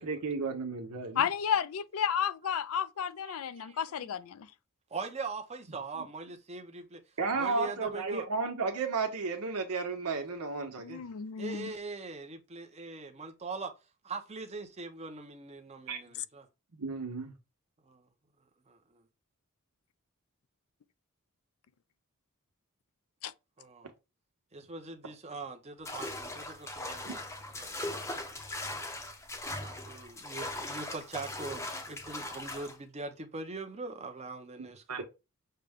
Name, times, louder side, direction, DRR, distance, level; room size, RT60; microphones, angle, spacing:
voice 1, 0.0-1.3 7.2-11.0 15.9-16.0 16.7-17.3 27.0-27.1 34.9-35.0, right 4 dB, 90° right, 1.1 m, -33 dB
voice 2, 1.2-4.5 10.8-11.7 23.2-23.3, left 8 dB, 65° left, 0.4 m, -32 dB
voice 3, 3.2-3.8 4.9-7.0 7.4-8.3 11.4-13.7 14.0-16.5 17.8-18.1 18.7-19.0 23.6-23.9 24.5-27.2 27.5-28.0 29.6-35.0, right 3 dB, 30° right, 0.7 m, -42 dB
sound 1, 25.9-32.8, left 1 dB, 15° left, 0.6 m, -39 dB
6.6 x 2.2 x 3.5 m
head